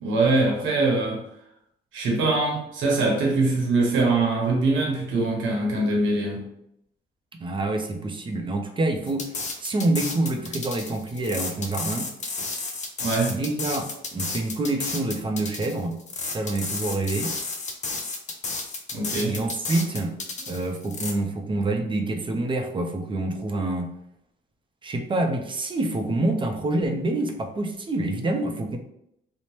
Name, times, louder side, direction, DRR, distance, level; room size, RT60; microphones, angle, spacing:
voice 1, 0.0-1.2 1.9-6.4 13.0-13.4 18.9-19.4, right 2 dB, 80° right, -1 dB, 0.9 m, -23 dB
voice 2, 7.4-9.3 9.6-12.1 13.3-15.9 16.3-17.3 19.3-20.1 20.4-23.9 24.8-28.8, right 2 dB, 25° right, 5 dB, 0.5 m, -27 dB
sound 1, 9.1-21.1, left 3 dB, 35° left, 0.5 m, -32 dB
2.8 x 2.1 x 3.1 m, 0.76 s
cardioid pair, 90°, 20 cm